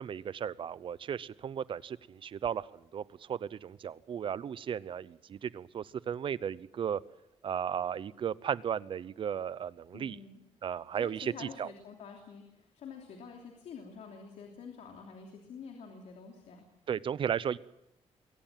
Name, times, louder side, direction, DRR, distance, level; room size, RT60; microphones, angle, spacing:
voice 1, 0.0-2.7 2.9-7.0 7.4-10.2 10.6-11.7 16.9-17.6, right 8 dB, 50° right, 19 dB, 0.7 m, -35 dB
voice 2, 9.9-10.4 10.9-16.7, left 6 dB, 85° left, 2 dB, 3.1 m, -48 dB
22.5 x 18.0 x 7.5 m, 0.89 s
cardioid pair, 150°, 11 cm